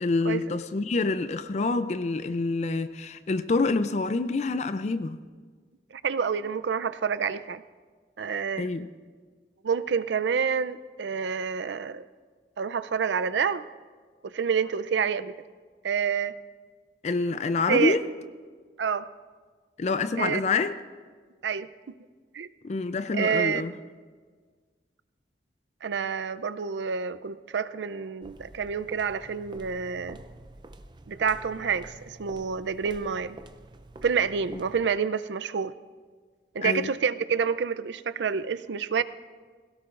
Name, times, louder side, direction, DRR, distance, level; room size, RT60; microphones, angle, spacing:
voice 1, 0.0-5.2 8.6-8.9 17.0-18.0 19.8-20.8 22.6-23.7 34.5-34.6 36.6-36.9, left 3 dB, 40° left, 0.4 m, -27 dB
voice 2, 5.9-7.6 8.2-8.7 9.6-12.0 12.6-13.7 14.2-15.3 15.8-16.4 17.7-18.0 18.8-19.1 20.2-20.4 21.4-21.7 22.3-22.5 23.1-23.6 25.8-30.2 31.1-33.4 34.0-35.7 36.5-39.0, right 6 dB, 80° right, 0.5 m, -28 dB
sound 1, 28.2-35.0, right 2 dB, 25° right, 0.5 m, -47 dB
21.0 x 17.0 x 2.5 m
head